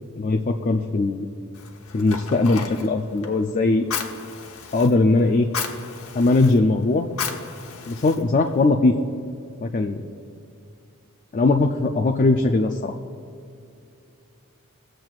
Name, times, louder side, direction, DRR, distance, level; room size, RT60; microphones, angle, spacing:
voice 1, 0.2-1.3 1.9-3.9 4.7-5.5 6.1-7.1 7.9-8.9 9.6-10.0 11.3-12.9, left 2 dB, 35° left, 4 dB, 0.4 m, -20 dB
Fire, 1.5-8.7, left 6 dB, 70° left, 1.0 m, -35 dB
19.5 x 7.6 x 2.4 m, 2.5 s
head